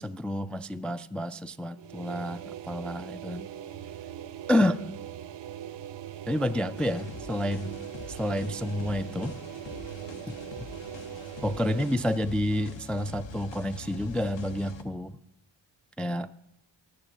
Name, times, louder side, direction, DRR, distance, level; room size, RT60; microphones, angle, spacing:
voice 1, 0.0-3.5 4.5-4.8 6.3-7.8 8.1-9.4 10.3-10.4 11.4-15.1 16.0-16.3, left 1 dB, ahead, 11 dB, 0.3 m, -29 dB
sound 1, 1.7-12.2, right 10 dB, 60° right, 0.6 m, -41 dB
sound 2, 6.8-14.8, left 4 dB, 60° left, 1.1 m, -45 dB
10.0 x 6.9 x 7.3 m, 0.88 s
cardioid pair, 50°, 50 cm